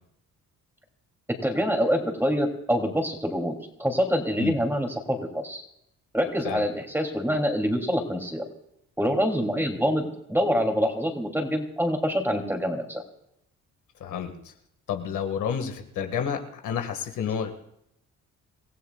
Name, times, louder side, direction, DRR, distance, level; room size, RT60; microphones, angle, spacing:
voice 1, 1.4-5.6 6.1-8.4 9.0-13.0, equal, 5° right, 3 dB, 2.9 m, -26 dB
voice 2, 14.0-14.5 14.9-17.5, left 8 dB, 80° left, 4 dB, 1.9 m, -30 dB
27.5 x 15.0 x 2.4 m, 0.76 s
cardioid pair, 90°, 30 cm